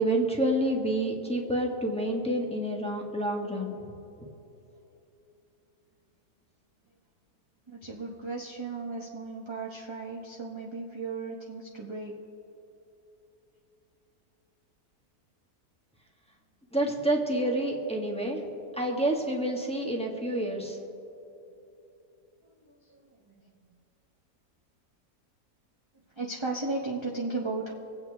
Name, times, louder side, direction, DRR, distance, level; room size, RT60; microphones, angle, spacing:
voice 1, 0.0-3.8 16.7-18.4 18.8-20.8, right 1 dB, 5° left, -1 dB, 1.5 m, -28 dB
voice 2, 7.7-12.2 22.6-23.0 23.3-23.4 26.2-27.7, right 3 dB, 20° right, -2 dB, 0.9 m, -35 dB
25.5 x 8.7 x 3.5 m, 3.0 s
omnidirectional pair, 1.6 m